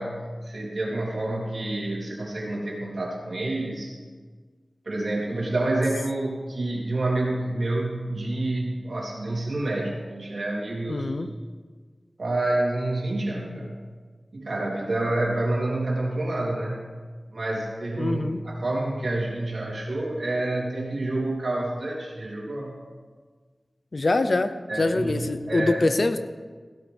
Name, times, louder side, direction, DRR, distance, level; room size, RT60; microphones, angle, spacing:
voice 1, 0.0-3.9 4.8-11.1 12.2-13.7 14.3-16.8 17.3-22.8 24.7-25.8, right 2 dB, 70° right, -4 dB, 3.4 m, -28 dB
voice 2, 10.9-11.3 18.0-18.4 23.9-26.2, left 2 dB, 60° left, 10 dB, 0.7 m, -24 dB
16.5 x 12.5 x 3.5 m, 1.5 s
wide cardioid pair, 80°, 0 cm